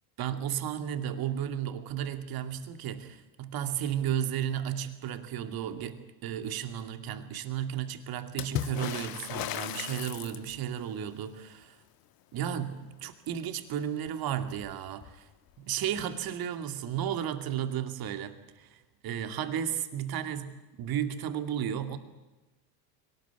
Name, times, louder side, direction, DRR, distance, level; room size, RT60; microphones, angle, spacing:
voice 1, 0.2-11.8 12.3-15.3 15.6-22.0, right 9 dB, 45° right, 9 dB, 2.5 m, -34 dB
Water / Splash splatter, 8.4-10.8 14.1-14.2 14.4-15.2 16.3-16.4, left 12 dB, 45° left, 1.3 m, -36 dB
22.0 x 19.0 x 9.6 m, 1.1 s
hypercardioid pair, 95°, 48 cm